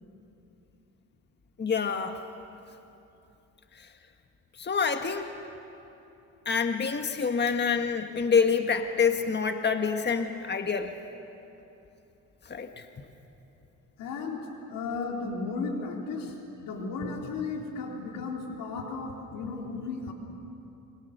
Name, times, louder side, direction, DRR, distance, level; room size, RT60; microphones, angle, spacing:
voice 1, 1.6-2.2 3.8-3.9 4.6-5.3 6.4-10.9 12.4-12.8, left 6 dB, 30° left, 6 dB, 1.5 m, -27 dB
voice 2, 14.0-20.1, left 4 dB, 85° left, 1 dB, 3.6 m, -35 dB
28.0 x 23.0 x 6.6 m, 2.9 s
cardioid pair, 75°, 33 cm